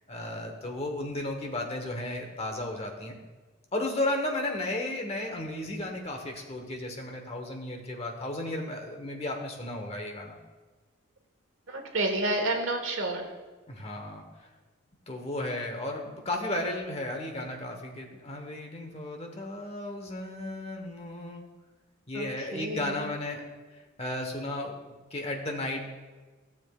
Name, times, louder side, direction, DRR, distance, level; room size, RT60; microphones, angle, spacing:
voice 1, 0.1-3.2 3.7-10.4 13.7-14.5 15.1-21.5 22.1-23.4 23.7-24.8 25.1-25.9, left 1 dB, 30° left, 3 dB, 1.1 m, -34 dB
voice 2, 11.7-13.3 22.1-23.1, right 2 dB, 70° right, 3 dB, 1.3 m, -30 dB
15.5 x 7.1 x 2.4 m, 1.3 s
head